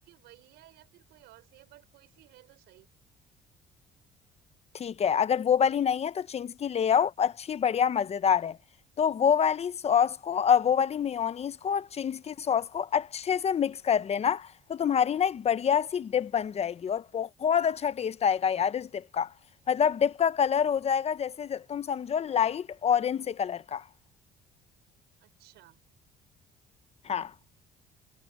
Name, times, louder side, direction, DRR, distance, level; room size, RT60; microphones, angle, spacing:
voice 1, 0.0-2.9 25.2-25.8, right 16 dB, 85° right, 5.1 m, -57 dB
voice 2, 4.7-8.6 9.0-19.3 19.7-23.8 27.0-27.3, left 8 dB, 40° left, 0.8 m, -27 dB
cardioid pair, 110°, 17 cm